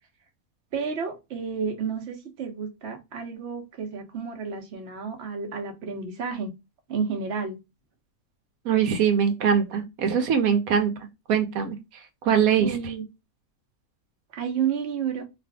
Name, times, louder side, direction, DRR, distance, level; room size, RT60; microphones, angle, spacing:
voice 1, 0.7-6.5 6.9-7.6 12.6-13.0 14.3-15.2, right 6 dB, 55° right, 1.1 m, -31 dB
voice 2, 8.6-10.9 11.3-11.8 12.2-12.9, right 7 dB, 85° right, 1.1 m, -22 dB
2.6 x 2.5 x 3.3 m
omnidirectional pair, 1.5 m